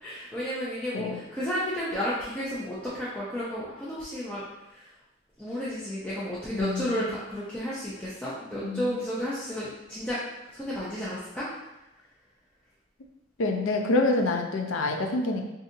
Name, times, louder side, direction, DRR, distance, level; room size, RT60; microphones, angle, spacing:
voice 1, 0.0-4.4 4.7-4.9 5.4-10.2 10.5-11.5, equal, 5° left, -10 dB, 0.4 m, -32 dB
voice 2, 6.5-7.1 8.6-8.9 13.4-15.5, left 2 dB, 80° left, 3 dB, 0.5 m, -27 dB
3.9 x 2.7 x 2.5 m, 0.96 s
head